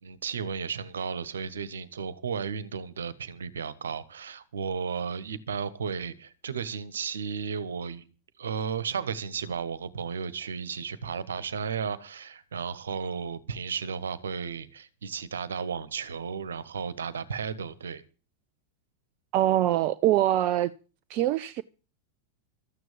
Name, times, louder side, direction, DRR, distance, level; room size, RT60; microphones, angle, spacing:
voice 1, 0.0-8.0 8.4-18.0, right 6 dB, 65° right, 1.5 m, -34 dB
voice 2, 19.3-20.7 21.1-21.6, right 13 dB, 40° right, 0.7 m, -23 dB
13.5 x 9.3 x 7.5 m
figure-of-eight pair, 90°, 0 cm